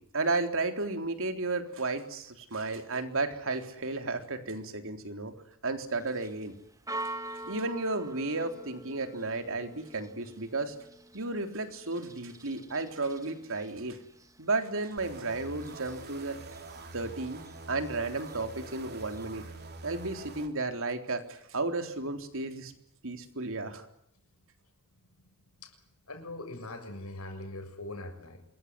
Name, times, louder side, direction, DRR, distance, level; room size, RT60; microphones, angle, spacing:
voice 1, 0.1-5.3 5.6-6.5 7.5-10.7 11.1-14.0 14.4-16.4 16.9-17.4 17.7-19.4 19.8-22.7 23.0-23.9, right 3 dB, 65° right, 6 dB, 3.8 m, -33 dB
Church bell, 5.8-19.6, right 2 dB, 15° right, 2.4 m, -47 dB
sound 1, 15.0-20.5, right 3 dB, 50° right, 3.3 m, -45 dB
voice 2, 25.2-28.5, left 2 dB, 80° left, 7 dB, 6.7 m, -42 dB
27.0 x 22.0 x 9.8 m, 0.74 s
head